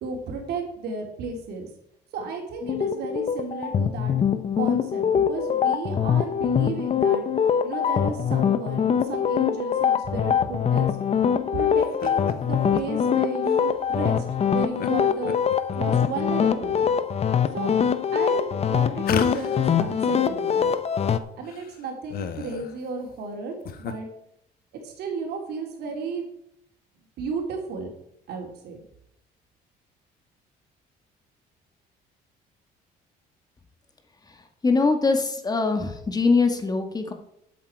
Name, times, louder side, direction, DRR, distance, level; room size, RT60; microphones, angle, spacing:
voice 1, 0.0-1.7 2.1-7.2 7.6-11.0 11.5-14.2 14.5-17.0 17.5-17.7 18.1-20.7 21.3-24.1 24.8-26.2 27.2-27.9 28.3-28.8, right 4 dB, 75° right, 2 dB, 3.3 m, -33 dB
sound 1, 2.6-21.2, left 8 dB, 40° left, 0.9 m, -23 dB
sound 2, 11.8-12.3 12.8-12.9 13.4-13.6 14.8-14.9 15.2-16.2 16.7-17.2 17.8-17.9 19.0-20.0 20.3-20.4 20.5-20.6 21.1-21.2 21.4-22.8 23.4-23.9, left 7 dB, 60° left, 1.2 m, -34 dB
voice 2, 34.6-37.1, left 4 dB, 25° left, 6 dB, 1.6 m, -22 dB
12.5 x 8.4 x 4.7 m, 0.78 s
cardioid pair, 110°, 17 cm